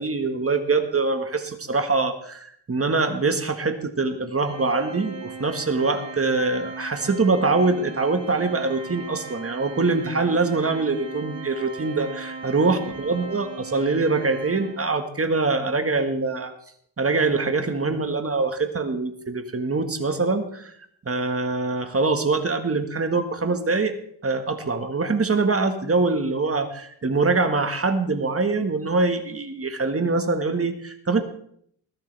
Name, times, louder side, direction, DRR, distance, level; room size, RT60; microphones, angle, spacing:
voice 1, 0.0-16.5 17.0-20.7 21.1-23.9 24.2-31.2, right 3 dB, 30° right, 7 dB, 1.6 m, -24 dB
Organ, 4.4-15.1, right 4 dB, 65° right, 3.4 m, -38 dB
20.5 x 11.5 x 3.4 m, 0.66 s
cardioid pair, 90°, 44 cm